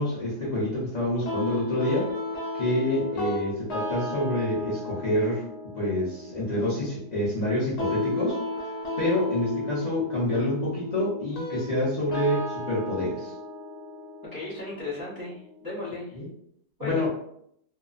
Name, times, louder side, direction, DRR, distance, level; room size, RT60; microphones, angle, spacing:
voice 1, 0.0-2.1 2.5-5.4 5.7-8.4 9.0-13.3 16.1-16.3 16.8-17.1, left 1 dB, 50° left, -8 dB, 0.5 m, -27 dB
sound 1, 1.3-16.2, left 2 dB, 75° left, 1.2 m, -34 dB
voice 2, 14.3-16.1 16.8-17.1, left 2 dB, 25° right, -10 dB, 0.4 m, -35 dB
2.8 x 2.0 x 2.4 m, 0.70 s
omnidirectional pair, 1.7 m